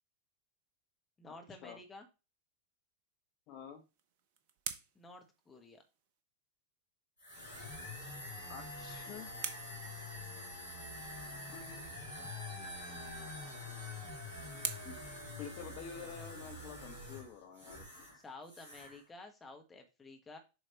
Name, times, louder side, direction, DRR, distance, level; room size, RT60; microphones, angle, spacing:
voice 1, 1.2-2.1 4.9-5.8 18.1-20.4, left 3 dB, 15° left, 4 dB, 1.3 m, -52 dB
voice 2, 3.5-3.8 8.5-9.3 11.5-11.9 14.8-15.0 15.4-17.8, left 6 dB, 40° left, 5 dB, 1.3 m, -48 dB
sound 1, 3.7-6.2 8.3-10.8 13.0-16.1, right 8 dB, 45° right, 0.9 m, -48 dB
sound 2, 7.2-18.2 18.4-19.0, left 2 dB, 80° left, 4.1 m, -46 dB
7.4 x 5.0 x 3.0 m, 0.28 s
figure-of-eight pair, 90°, 0 cm